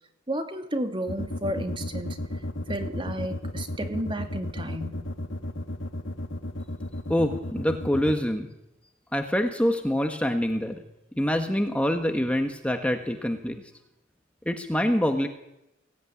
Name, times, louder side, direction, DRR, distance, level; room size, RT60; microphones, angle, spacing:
voice 1, 0.3-2.2 2.7-5.1, right 1 dB, 25° right, 6 dB, 2.2 m, -32 dB
sound 1, 1.1-8.1, left 1 dB, 70° left, 1.8 m, -33 dB
voice 2, 7.1-8.5 9.1-10.8 11.2-13.6 14.4-15.3, equal, 5° left, 5 dB, 1.6 m, -25 dB
23.5 x 17.0 x 9.8 m, 0.88 s
head